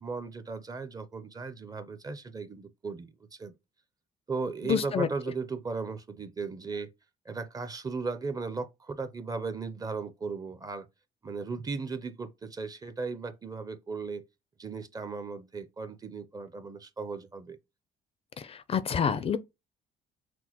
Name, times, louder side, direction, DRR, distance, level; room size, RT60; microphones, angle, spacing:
voice 1, 0.0-3.5 4.3-6.9 7.3-10.9 11.2-14.2 14.6-17.6, right 4 dB, 20° right, 0.5 m, -36 dB
voice 2, 4.7-5.1 18.4-19.4, left 7 dB, 35° left, 0.4 m, -28 dB
5.9 x 2.1 x 2.9 m
cardioid pair, 110°, 17 cm